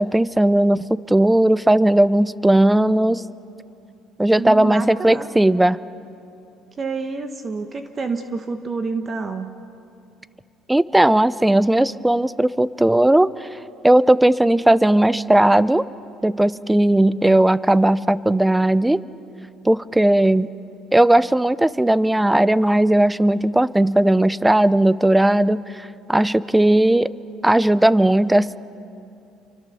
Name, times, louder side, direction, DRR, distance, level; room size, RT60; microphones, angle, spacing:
voice 1, 0.0-3.2 4.2-5.8 10.7-13.5 13.8-15.8 16.2-19.0 19.6-20.5 20.9-27.1 27.4-28.6, right 1 dB, 5° right, 18 dB, 0.6 m, -17 dB
voice 2, 4.4-5.3 6.8-9.5, right 4 dB, 30° right, 7 dB, 1.2 m, -28 dB
29.0 x 24.5 x 7.0 m, 2.6 s
cardioid pair, 105°, 0 cm